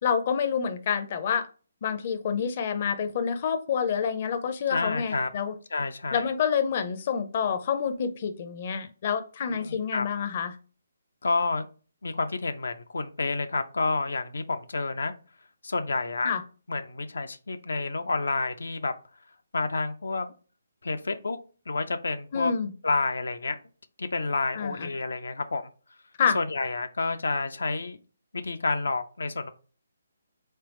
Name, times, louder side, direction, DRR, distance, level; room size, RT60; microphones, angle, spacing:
voice 1, 0.0-1.5 1.8-5.5 6.1-10.5 16.2-16.4 22.3-22.7 24.5-24.9 26.2-26.4, left 7 dB, 40° left, 0.5 m, -28 dB
voice 2, 4.7-5.3 5.7-6.3 9.5-10.0 11.2-11.7 12.0-15.1 15.6-16.3 16.7-18.9 19.5-20.3 20.8-21.4 21.7-22.5 22.8-23.6 24.0-25.7 26.3-28.0 28.3-29.5, left 3 dB, 85° left, 0.5 m, -29 dB
3.7 x 3.3 x 3.0 m
hypercardioid pair, 160°, 0 cm